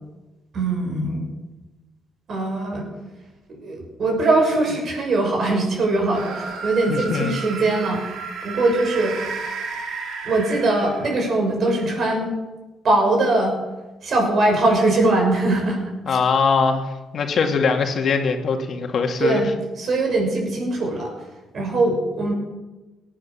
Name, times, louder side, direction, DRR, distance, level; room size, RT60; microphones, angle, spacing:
voice 1, 0.5-1.3 2.3-2.9 3.6-8.0 8.4-9.2 10.2-12.3 12.8-13.5 14.0-15.8 16.1-16.2 19.2-19.5 19.8-21.1 21.5-22.3, right 2 dB, 55° right, 1 dB, 6.5 m, -21 dB
sound 1, 6.1-11.3, right 5 dB, 75° right, 3.1 m, -32 dB
voice 2, 6.9-7.3 16.1-19.4, left 5 dB, 55° left, 4 dB, 2.1 m, -22 dB
18.0 x 9.8 x 7.0 m, 1.1 s
cardioid pair, 90°, 0 cm